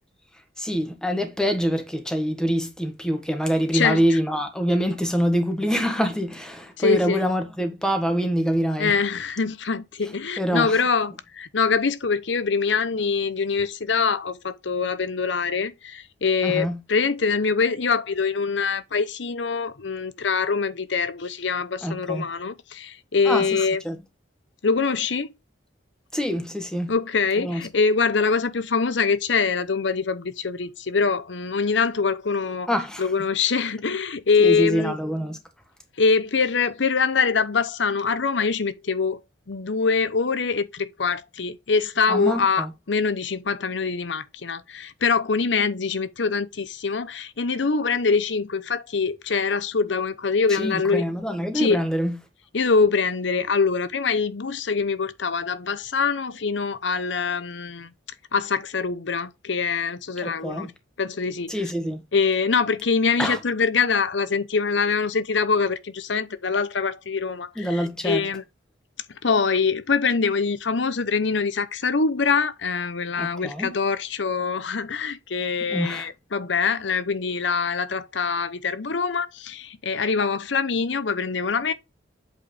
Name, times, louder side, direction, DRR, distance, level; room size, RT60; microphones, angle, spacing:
voice 1, 0.6-8.9 10.4-10.8 16.4-16.8 21.8-22.3 23.2-23.6 23.8-24.0 26.1-26.9 27.4-27.6 32.7-33.1 34.4-35.4 42.1-42.7 50.5-52.2 60.2-60.7 61.5-62.0 63.2-63.4 67.5-68.3 73.2-73.8 75.7-76.1, equal, 5° left, 1.5 m, -25 dB
voice 2, 3.7-4.2 6.8-7.2 8.8-23.8 24.6-25.3 26.9-32.7 33.0-35.0 36.0-39.2 39.5-51.0 51.5-51.8 52.5-57.9 58.3-60.7 61.0-61.5 62.1-68.4 69.2-81.7, left 5 dB, 75° left, 0.8 m, -24 dB
8.2 x 4.7 x 3.4 m
head